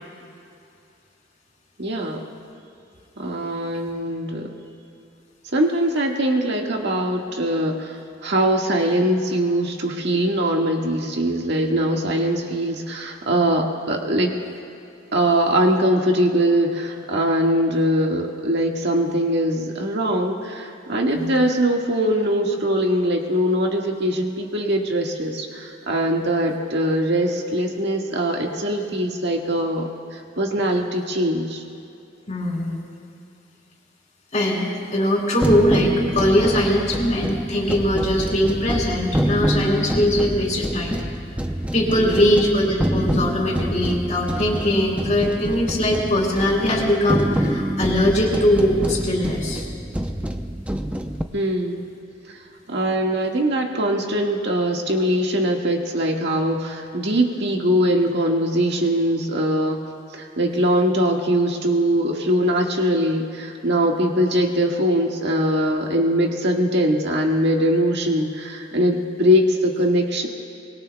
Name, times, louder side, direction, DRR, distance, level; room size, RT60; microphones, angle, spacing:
voice 1, 1.8-2.3 3.2-4.5 5.5-8.0 8.2-14.3 15.1-31.6 41.9-42.2 51.3-51.8 52.3-52.4 52.7-59.8 60.1-70.3, equal, 60° right, 1 dB, 1.7 m, -22 dB
voice 2, 32.3-32.8 34.3-41.0 41.7-49.7, left 1 dB, 40° left, -2 dB, 3.7 m, -21 dB
sound 1, 35.4-51.2, right 1 dB, 5° right, 0.6 m, -26 dB
25.5 x 22.5 x 2.3 m, 2.6 s
head